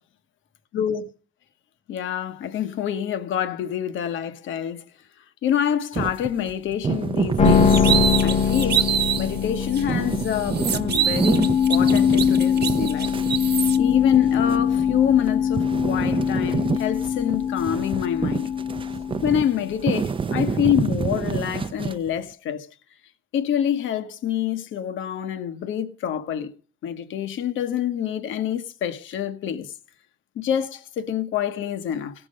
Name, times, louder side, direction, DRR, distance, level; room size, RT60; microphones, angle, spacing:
voice 1, 0.7-1.1 1.9-4.8 5.4-7.9 8.2-8.9 9.2-13.1 13.8-18.5 19.2-22.7 23.3-26.5 26.8-29.7 30.4-32.1, left 9 dB, 80° left, 1.1 m, -26 dB
sound 1, 5.9-8.8 9.2-15.3 15.6-22.2, right 5 dB, 25° right, 0.5 m, -27 dB
sound 2, 7.4-19.7, left 7 dB, 35° left, 0.7 m, -22 dB
sound 3, 7.5-9.3 9.7-9.8 10.2-13.8, right 9 dB, 55° right, 1.0 m, -26 dB
17.0 x 6.1 x 5.1 m
cardioid pair, 90°, 20 cm